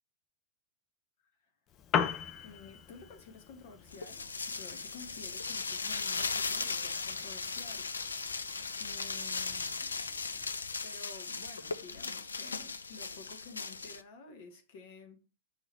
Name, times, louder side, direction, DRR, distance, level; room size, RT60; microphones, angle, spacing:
Piano, 1.7-10.7, left 8 dB, 35° left, 0.6 m, -41 dB
voice 1, 2.4-7.9 8.8-9.9 10.8-15.2, left 4 dB, 50° left, 1.7 m, -52 dB
sound 1, 3.9-14.0, left 4 dB, 75° left, 0.5 m, -37 dB
6.5 x 3.9 x 4.7 m
figure-of-eight pair, 90°, 0 cm